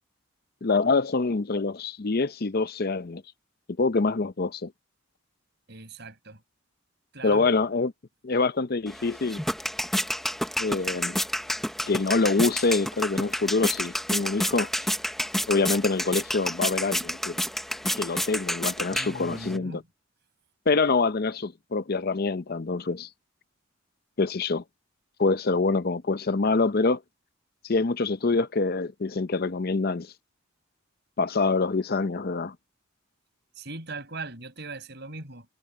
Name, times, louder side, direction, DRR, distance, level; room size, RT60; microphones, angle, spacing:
voice 1, 0.6-3.2 3.8-4.7 7.2-7.9 8.2-9.4 10.6-11.2 11.9-14.7 15.5-17.4 17.9-19.8 20.7-23.1 24.2-24.6 25.2-27.0 27.6-30.1 31.2-32.6, left 3 dB, 45° left, 0.6 m, -25 dB
voice 2, 5.7-6.4 7.1-7.5 18.9-19.9 33.6-35.5, right 3 dB, 50° right, 6.9 m, -39 dB
sound 1, 8.9-19.6, equal, ahead, 0.7 m, -30 dB
head